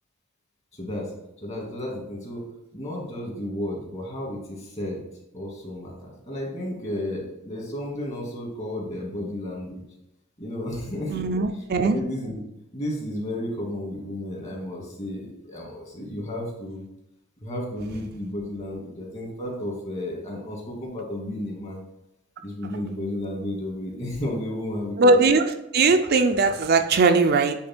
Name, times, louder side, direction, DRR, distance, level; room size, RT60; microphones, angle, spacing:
voice 1, 0.8-1.1 1.4-2.5 2.7-5.0 5.3-9.8 10.4-11.2 11.8-12.4 12.7-16.8 17.4-21.8 22.4-25.2, left 1 dB, 35° left, -2 dB, 2.1 m, -32 dB
voice 2, 11.1-12.0 25.0-27.6, right 3 dB, 50° right, 6 dB, 0.5 m, -20 dB
8.5 x 3.3 x 4.4 m, 0.86 s
head